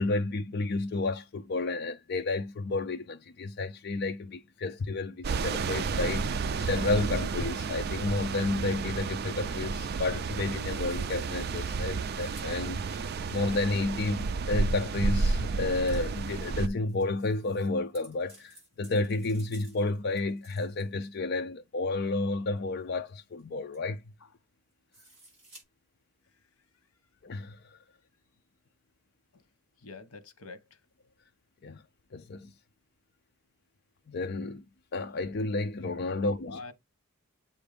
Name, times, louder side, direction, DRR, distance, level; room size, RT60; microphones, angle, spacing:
voice 1, 0.0-24.0 27.2-27.6 31.6-31.8 32.1-32.5 34.1-34.6 34.9-36.6, left 2 dB, 50° left, 0.4 m, -31 dB
sound 1, 5.2-16.7, right 4 dB, 45° right, 0.4 m, -31 dB
sound 2, 10.6-11.4 12.0-12.5 14.6-14.7 15.8-21.2 22.6-22.7 23.1-23.2 23.4-23.5 23.7-24.0 24.9-25.6, right 2 dB, 30° right, 5.1 m, -57 dB
voice 2, 29.8-30.6 36.1-36.7, left 3 dB, 85° left, 1.0 m, -45 dB
7.8 x 2.6 x 5.1 m
head